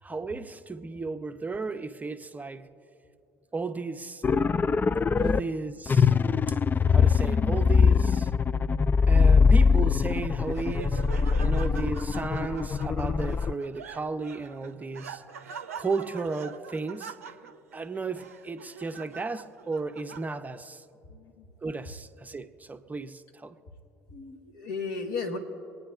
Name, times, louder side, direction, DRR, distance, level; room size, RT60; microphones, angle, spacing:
voice 1, 0.0-2.7 3.5-4.2 5.2-6.1 6.5-6.6 6.9-8.3 9.1-11.0 11.4-15.2 15.7-17.4 17.7-20.8 21.6-23.6, right 3 dB, 20° right, 0.7 m, -34 dB
sound 1, 4.2-5.4 5.9-13.5, left 5 dB, 25° left, 0.3 m, -22 dB
Laughter, 10.1-20.7, right 6 dB, 80° right, 0.6 m, -44 dB
voice 2, 21.1-21.5 24.1-25.4, left 4 dB, 60° left, 1.8 m, -35 dB
24.5 x 9.5 x 2.5 m
figure-of-eight pair, 55°, 8 cm